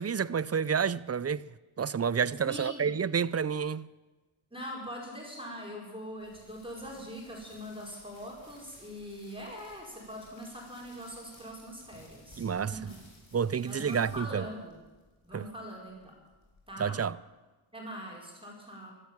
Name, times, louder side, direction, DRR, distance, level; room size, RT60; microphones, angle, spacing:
voice 1, 0.0-1.5 1.8-3.9 12.4-12.8 13.3-14.5 15.3-15.5 16.8-17.2, right 7 dB, 35° right, 0.4 m, -29 dB
voice 2, 2.5-2.9 4.5-13.0 13.6-14.8 15.2-16.1 16.7-17.0 17.7-18.9, equal, 10° right, 4.9 m, -42 dB
sound 1, 6.2-17.2, left 1 dB, 65° left, 4.3 m, -58 dB
16.5 x 12.0 x 7.2 m
wide cardioid pair, 70°, 50 cm